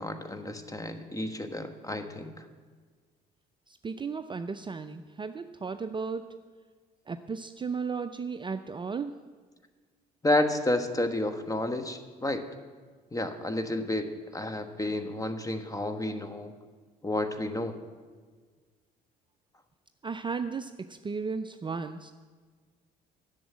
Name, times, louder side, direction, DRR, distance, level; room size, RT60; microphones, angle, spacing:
voice 1, 0.0-2.5 10.2-12.4 13.1-16.5 17.0-17.8, left 1 dB, 15° left, 8 dB, 1.3 m, -31 dB
voice 2, 3.7-6.4 7.1-9.2 20.0-22.1, right 5 dB, 25° right, 9 dB, 0.5 m, -35 dB
11.0 x 7.2 x 8.6 m, 1.5 s
hypercardioid pair, 60°, 21 cm